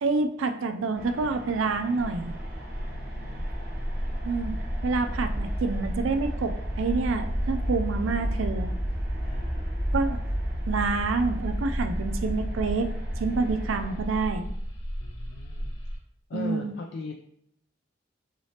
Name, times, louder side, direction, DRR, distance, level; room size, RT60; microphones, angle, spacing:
voice 1, 0.0-2.3 4.2-4.5 4.8-8.7 9.9-10.2 10.7-12.9 13.2-14.5 16.3-16.7, right 4 dB, 75° right, 7 dB, 0.4 m, -27 dB
sound 1, 0.9-14.0, right 1 dB, 50° right, 0.8 m, -44 dB
sound 2, 2.0-16.0, equal, 75° left, 1.1 m, -31 dB
voice 2, 2.9-3.5 9.2-9.8 15.0-15.8 16.3-17.1, left 3 dB, 55° left, 2 dB, 0.3 m, -39 dB
3.9 x 3.2 x 2.8 m, 0.72 s
head